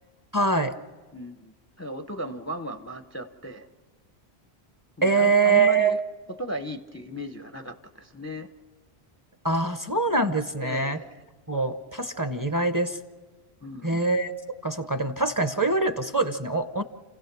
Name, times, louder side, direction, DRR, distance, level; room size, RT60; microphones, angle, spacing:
voice 1, 0.3-0.7 5.0-6.0 9.4-11.0 11.5-13.0 13.8-14.3 14.6-16.8, right 3 dB, 20° right, 8 dB, 0.7 m, -24 dB
voice 2, 1.1-3.7 5.0-6.0 6.3-8.5 10.6-11.1 13.6-14.0, equal, 20° left, 8 dB, 0.5 m, -36 dB
29.5 x 16.5 x 6.0 m, 1.3 s
omnidirectional pair, 1.1 m